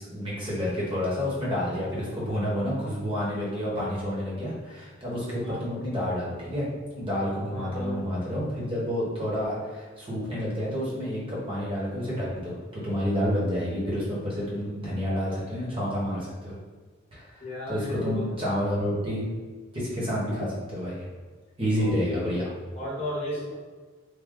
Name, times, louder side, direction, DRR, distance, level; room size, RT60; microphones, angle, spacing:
voice 1, 0.0-6.7 6.9-16.6 17.1-19.2 19.7-21.1 21.6-22.5, equal, 25° right, -7 dB, 1.1 m, -29 dB
voice 2, 7.5-8.0 17.4-18.2 21.8-22.4 22.7-23.5, left 1 dB, 30° left, -6 dB, 1.0 m, -34 dB
3.3 x 2.2 x 3.7 m, 1.4 s
head